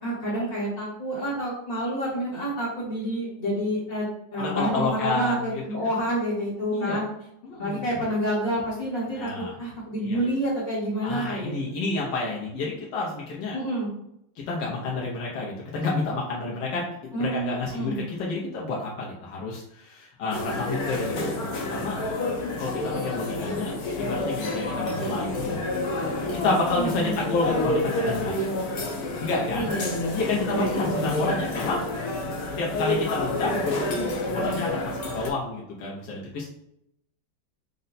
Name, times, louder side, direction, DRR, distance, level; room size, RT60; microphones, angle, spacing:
voice 1, 0.0-4.1 4.3-7.0 7.5-11.8 13.5-13.9 17.1-18.0 26.8-27.2 29.5-30.2 30.5-31.3, right 1 dB, 30° left, -6 dB, 0.8 m, -28 dB
voice 2, 4.4-6.0 6.7-7.0 7.4-8.0 9.1-9.5 10.0-10.2 11.0-13.6 14.5-21.4 21.7-22.0 22.6-23.7 24.0-25.6 26.4-28.4 29.2-29.7 30.1-31.9 32.6-36.5, left 3 dB, 80° left, -4 dB, 1.5 m, -29 dB
sound 1, 20.3-35.3, left 2 dB, 65° left, 1.2 m, -29 dB
5.4 x 2.1 x 4.0 m, 0.78 s
omnidirectional pair, 1.9 m